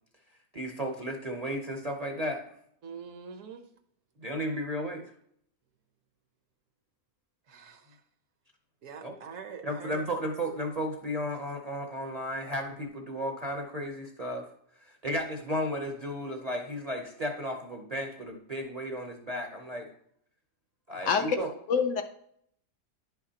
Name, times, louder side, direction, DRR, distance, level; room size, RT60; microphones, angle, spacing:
voice 1, 0.5-2.4 4.2-5.0 9.0-9.1 9.6-14.4 14.8-19.9 20.9-21.5, equal, 40° right, 2 dB, 0.6 m, -34 dB
voice 2, 2.8-3.6 7.5-7.8 8.8-10.0, right 6 dB, 65° right, 7 dB, 1.0 m, -44 dB
voice 3, 21.0-21.4 21.7-22.0, left 6 dB, 65° left, 6 dB, 0.9 m, -25 dB
10.5 x 5.7 x 2.8 m, 0.69 s
omnidirectional pair, 1.6 m